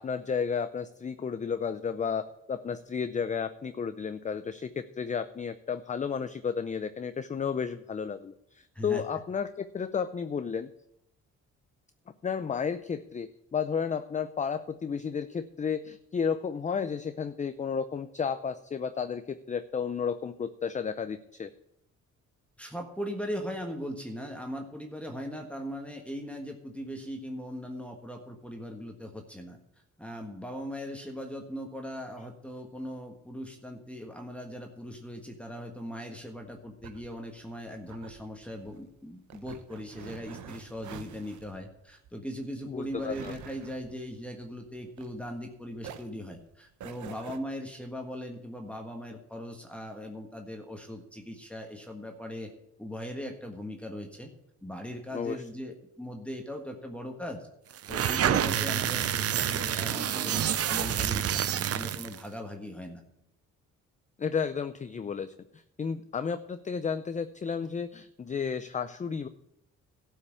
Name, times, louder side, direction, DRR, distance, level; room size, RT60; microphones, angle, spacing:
voice 1, 0.0-10.7 12.2-21.5 42.7-43.3 55.1-55.4 64.2-69.3, left 6 dB, 25° left, 11 dB, 0.5 m, -32 dB
voice 2, 22.6-29.6 30.0-52.5 52.8-54.3 54.6-57.5 57.9-63.0, equal, 5° left, 1 dB, 1.5 m, -39 dB
sound 1, 36.4-45.5 45.8-47.4, right 7 dB, 75° right, 1.0 m, -47 dB
sound 2, 57.8-62.2, right 10 dB, 55° right, 0.7 m, -28 dB
12.5 x 5.8 x 8.3 m, 0.80 s
cardioid pair, 90°, 30 cm